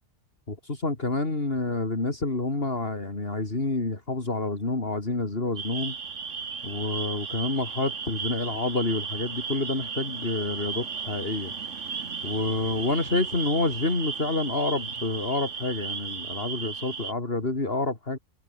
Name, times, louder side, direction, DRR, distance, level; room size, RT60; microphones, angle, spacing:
voice 1, 0.5-6.0 6.6-11.5 12.2-18.2, left 2 dB, 50° left, 3.8 m, -28 dB
sound 1, 5.6-17.1, right 6 dB, 75° right, 2.0 m, -35 dB
omnidirectional pair, 1.3 m